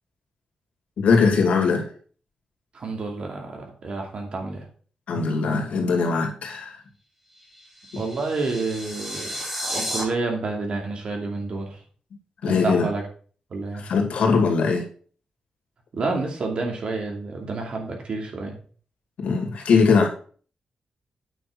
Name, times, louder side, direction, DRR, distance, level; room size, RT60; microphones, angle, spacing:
voice 1, 1.0-1.9 5.1-6.8 7.9-8.0 12.4-12.9 13.8-14.9 19.2-20.1, left 5 dB, 85° left, 2 dB, 2.6 m, -21 dB
voice 2, 2.7-4.6 7.9-9.3 9.7-11.8 12.5-13.0 13.5-13.9 15.9-18.5, right 3 dB, 50° right, 2 dB, 2.5 m, -29 dB
sound 1, 7.4-10.0, equal, 10° right, 1.6 m, -32 dB
8.9 x 6.3 x 4.5 m, 0.42 s
wide cardioid pair, 165°, 2 cm